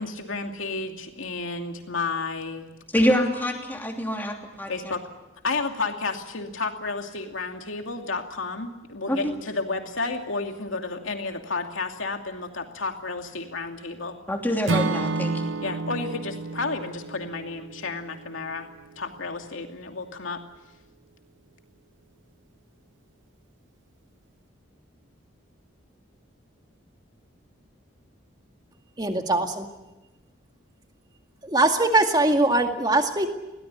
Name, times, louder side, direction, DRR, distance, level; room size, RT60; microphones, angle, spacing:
voice 1, 0.0-2.6 4.7-5.0 5.4-14.2 15.6-18.7 19.0-20.4, left 3 dB, 85° left, 4 dB, 2.6 m, -31 dB
voice 2, 2.9-4.9 9.1-9.3 14.3-15.5, equal, 10° left, 1 dB, 3.0 m, -26 dB
Acoustic guitar / Strum, 14.7-18.8, right 3 dB, 75° right, 1.0 m, -30 dB
voice 3, 29.0-29.7 31.4-33.3, right 2 dB, 20° right, 4 dB, 2.1 m, -21 dB
21.0 x 18.5 x 9.8 m, 1.0 s
head